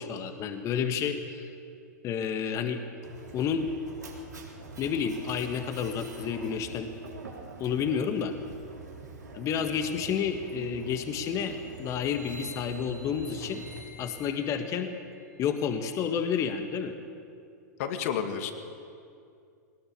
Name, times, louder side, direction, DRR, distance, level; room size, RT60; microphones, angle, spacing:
voice 1, 0.0-1.4 2.0-2.8 3.3-3.7 4.8-6.9 7.6-8.3 9.3-13.6 14.0-14.9 15.4-16.9, left 7 dB, 35° left, 7 dB, 1.7 m, -30 dB
Mechanisms, 3.0-13.8, right 3 dB, 80° right, 4.0 m, -45 dB
sound 1, 11.9-16.0, equal, 25° right, 4.0 m, -51 dB
voice 2, 17.8-18.5, left 8 dB, 55° left, 6 dB, 2.2 m, -30 dB
21.5 x 19.0 x 6.8 m, 2.5 s
figure-of-eight pair, 100°, 9 cm